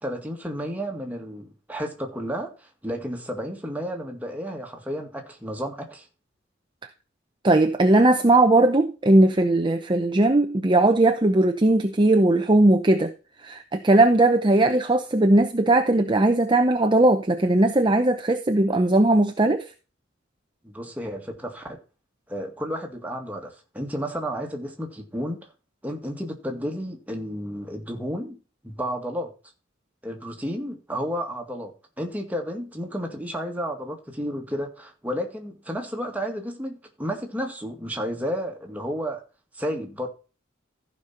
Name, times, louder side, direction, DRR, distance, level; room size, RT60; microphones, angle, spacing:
voice 1, 0.0-6.1 20.6-21.8 22.3-25.5 25.8-28.4 28.6-29.3 30.0-39.2 39.5-40.1, equal, 10° right, 2.0 m, -32 dB
voice 2, 7.4-13.1 13.4-19.7, right 2 dB, 25° right, 0.8 m, -19 dB
15.0 x 5.4 x 4.3 m
head